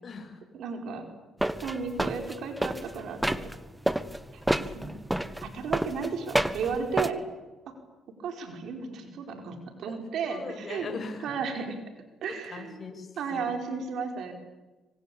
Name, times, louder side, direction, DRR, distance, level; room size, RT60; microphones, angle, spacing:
voice 1, 0.0-0.4 9.9-10.0 10.3-11.3 12.5-13.4, left 4 dB, 45° left, 5 dB, 7.0 m, -40 dB
voice 2, 0.5-1.1 1.6-3.4 4.3-4.4 4.7-4.9 5.4-7.2 8.2-10.9 11.2-11.8 12.2-12.8 13.2-14.3, right 5 dB, 75° right, 5 dB, 4.8 m, -34 dB
sound 1, 1.4-3.6 3.9-7.1, right 1 dB, 5° right, 1.5 m, -29 dB
25.5 x 25.0 x 8.7 m, 1.2 s
cardioid pair, 90°, 0 cm